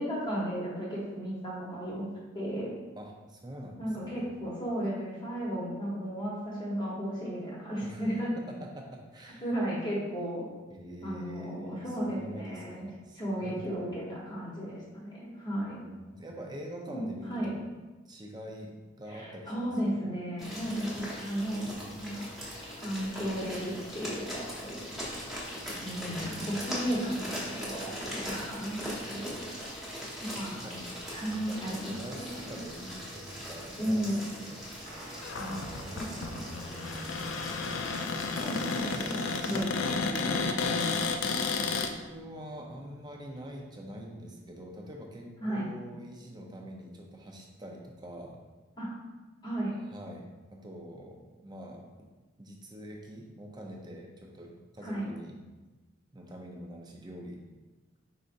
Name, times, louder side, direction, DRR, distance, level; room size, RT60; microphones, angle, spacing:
voice 1, 0.0-2.0 2.3-2.7 3.8-8.3 9.4-10.5 11.0-12.8 13.1-15.8 16.9-17.5 19.1-21.7 22.0-22.3 22.8-24.8 25.8-29.4 30.2-30.6 31.1-32.6 33.8-34.2 35.0-36.4 38.0-40.7 45.4-45.7 48.8-48.9 49.4-49.7 54.8-55.1, equal, 20° left, -6 dB, 1.0 m, -35 dB
voice 2, 3.0-4.3 7.8-8.0 8.4-9.5 10.7-13.8 15.5-17.7 18.1-20.0 21.5-22.0 25.5-26.6 29.1-29.2 30.4-34.7 36.5-37.5 41.7-48.4 49.9-51.8 52.4-55.4 56.1-57.4, equal, 20° right, 0 dB, 0.6 m, -45 dB
sound 1, 20.4-39.6, equal, ahead, 1.1 m, -41 dB
Guitar, 34.8-44.6, right 1 dB, 50° right, 1.0 m, -50 dB
Cupboard open or close, 35.2-41.9, left 4 dB, 75° left, 0.4 m, -32 dB
4.9 x 4.0 x 2.5 m, 1.2 s
head